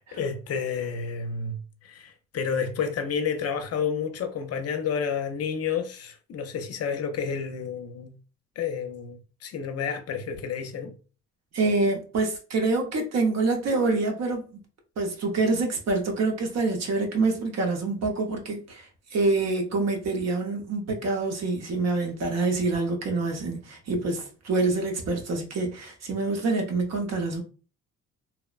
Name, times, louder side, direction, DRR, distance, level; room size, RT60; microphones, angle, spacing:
voice 1, 0.0-8.1 8.6-10.9, left 6 dB, 55° left, 0.5 m, -30 dB
voice 2, 11.5-14.5 15.0-27.4, right 3 dB, 60° right, 0.8 m, -26 dB
2.8 x 2.0 x 2.3 m
cardioid pair, 90°, 30 cm